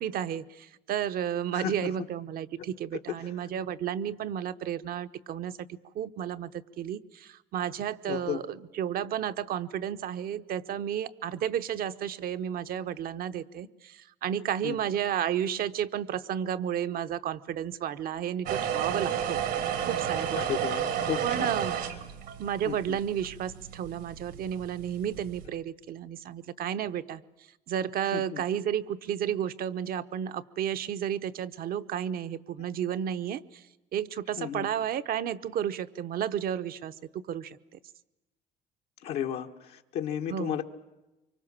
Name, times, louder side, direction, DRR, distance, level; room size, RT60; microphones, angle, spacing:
voice 1, 0.0-5.6 5.9-19.4 19.8-20.6 21.2-21.8 22.4-27.2 27.7-33.7 33.9-37.8 40.3-40.6, right 9 dB, 60° right, 12 dB, 0.8 m, -32 dB
voice 2, 1.5-1.9 3.1-3.3 8.1-8.4 14.6-14.8 20.3-21.5 22.6-23.0 28.1-28.4 34.4-34.7 39.0-40.6, left 10 dB, 80° left, 2 dB, 1.3 m, -34 dB
sound 1, 18.5-25.5, right 8 dB, 85° right, 2.2 m, -32 dB
25.0 x 24.0 x 7.4 m, 1.0 s
cardioid pair, 110°, 17 cm